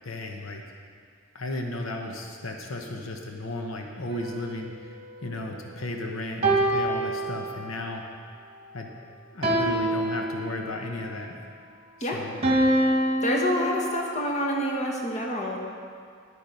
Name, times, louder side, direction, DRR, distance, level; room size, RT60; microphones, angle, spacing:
voice 1, 0.0-0.6 1.3-4.7 5.2-8.0 8.7-8.9 9.3-11.3 12.0-12.4, left 2 dB, 85° left, 2 dB, 1.0 m, -34 dB
sound 1, 4.1-5.8 6.4-7.9 9.4-10.9 12.4-13.9, right 1 dB, 30° right, 1.3 m, -26 dB
voice 2, 13.2-15.6, left 1 dB, 35° left, 0 dB, 1.3 m, -27 dB
10.5 x 9.1 x 5.3 m, 2.2 s
head